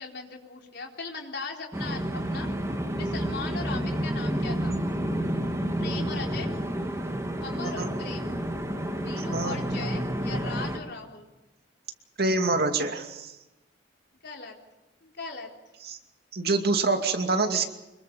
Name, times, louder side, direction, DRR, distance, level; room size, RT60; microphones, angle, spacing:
voice 1, 0.0-2.5 2.9-4.8 5.8-6.5 7.4-8.3 9.0-11.3 14.2-14.6 15.0-15.5, left 4 dB, 65° left, 1 dB, 4.1 m, -38 dB
sound 1, 1.7-10.8, equal, 15° right, 2.6 m, -30 dB
voice 2, 12.2-13.3 15.9-16.0 16.3-17.7, right 3 dB, 60° right, 5 dB, 2.5 m, -26 dB
26.0 x 22.0 x 5.5 m, 1.0 s
head